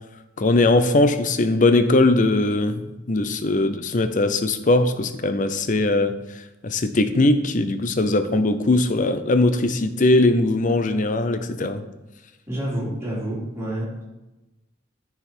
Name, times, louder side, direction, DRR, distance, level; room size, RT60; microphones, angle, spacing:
voice 1, 0.4-6.1 6.6-11.8, left 2 dB, 40° left, 10 dB, 0.6 m, -20 dB
voice 2, 12.5-14.0, right 1 dB, 15° right, -6 dB, 2.6 m, -28 dB
9.9 x 4.7 x 4.4 m, 1.1 s
head